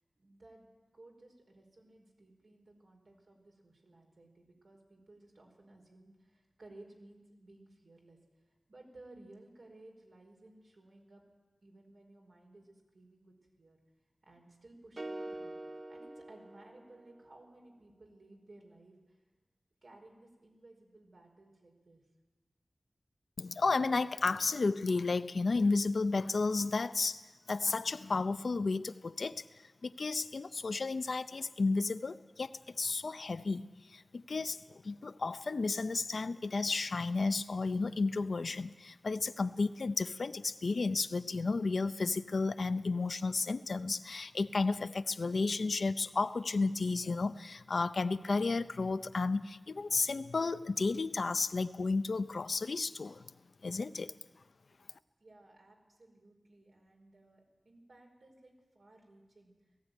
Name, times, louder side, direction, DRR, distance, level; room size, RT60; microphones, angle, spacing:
voice 1, 0.2-0.7 0.9-8.2 8.7-11.2 11.6-13.8 14.2-15.5 15.9-19.2 19.8-22.0 55.2-59.8, right 2 dB, 75° right, 1 dB, 4.8 m, -58 dB
sound 1, 15.0-17.3, right 1 dB, 40° right, 0.9 m, -45 dB
voice 2, 23.4-27.2 27.5-29.4 29.8-33.7 33.9-53.3 53.6-54.1, left 3 dB, 80° left, 12 dB, 0.6 m, -32 dB
18.5 x 15.5 x 9.2 m, 1.2 s
wide cardioid pair, 85°, 0 cm